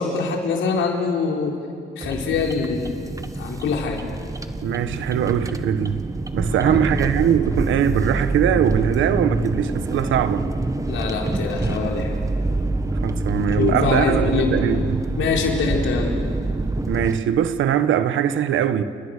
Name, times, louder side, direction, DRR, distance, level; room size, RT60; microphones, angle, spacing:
voice 1, 0.0-1.6 2.0-3.0 3.4-4.0 6.5-6.8 10.9-12.1 13.6-14.5 15.2-16.1, left 5 dB, 75° left, 4.6 m, -24 dB
sound 1, 2.0-17.2, right 2 dB, 15° right, 1.6 m, -26 dB
voice 2, 4.6-6.0 6.3-10.5 13.0-15.0 16.9-18.8, right 9 dB, 80° right, 1.4 m, -21 dB
29.0 x 29.0 x 6.8 m
cardioid pair, 90°, 20 cm